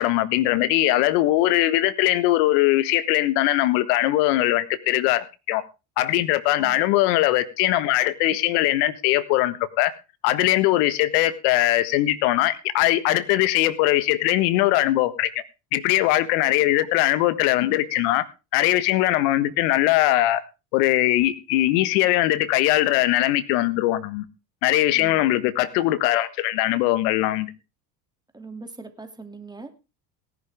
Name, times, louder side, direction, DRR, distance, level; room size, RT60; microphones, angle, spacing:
voice 1, 0.0-5.6 6.0-9.9 10.2-15.3 15.7-18.2 18.5-20.4 20.7-24.3 24.6-27.5, left 15 dB, 65° left, 14 dB, 1.6 m, -21 dB
voice 2, 6.6-7.1 16.5-16.6 24.9-25.5 28.3-29.8, right 3 dB, 10° right, 7 dB, 2.6 m, -42 dB
18.0 x 10.5 x 3.6 m, 0.29 s
hypercardioid pair, 75°, 50 cm